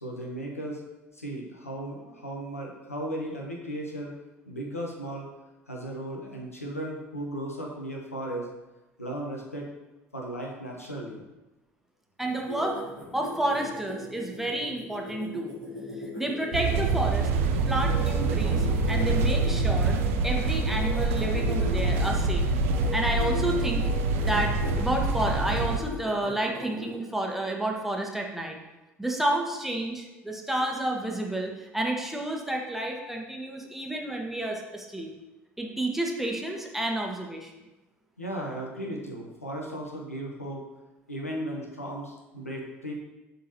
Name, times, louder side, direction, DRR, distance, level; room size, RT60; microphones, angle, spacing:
voice 1, 0.0-0.8 1.1-4.1 4.5-5.3 5.7-8.5 9.0-9.7 10.1-11.2 38.2-40.6 41.1-42.9, right 1 dB, 90° left, -1 dB, 0.9 m, -36 dB
sound 1, 12.2-20.0 20.5-22.2 22.6-22.9 23.2-23.5 23.8-24.7 25.2-26.9, left 1 dB, 65° left, 2.3 m, -38 dB
voice 2, 12.2-12.8 13.1-15.5 16.2-17.3 17.7-20.0 20.2-22.5 22.9-23.8 24.2-28.6 29.0-35.1 35.6-37.5, right 1 dB, 5° right, 0 dB, 1.1 m, -30 dB
sound 2, 16.5-25.8, right 3 dB, 65° right, 0.5 m, -26 dB
11.0 x 3.8 x 2.8 m, 1.0 s
figure-of-eight pair, 60°, 8 cm